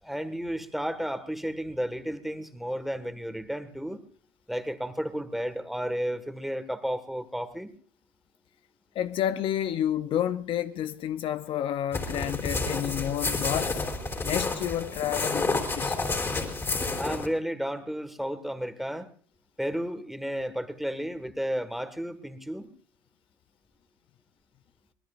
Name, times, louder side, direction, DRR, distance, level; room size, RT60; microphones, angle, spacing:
voice 1, 0.0-4.0 4.5-7.7 17.0-19.1 19.6-22.7, equal, ahead, 1.6 m, -32 dB
voice 2, 8.9-13.9 14.2-16.0, left 11 dB, 55° left, 0.7 m, -30 dB
sound 1, 11.9-17.3, left 3 dB, 25° left, 3.7 m, -30 dB
24.0 x 18.5 x 2.5 m
supercardioid pair, 90°, 11 cm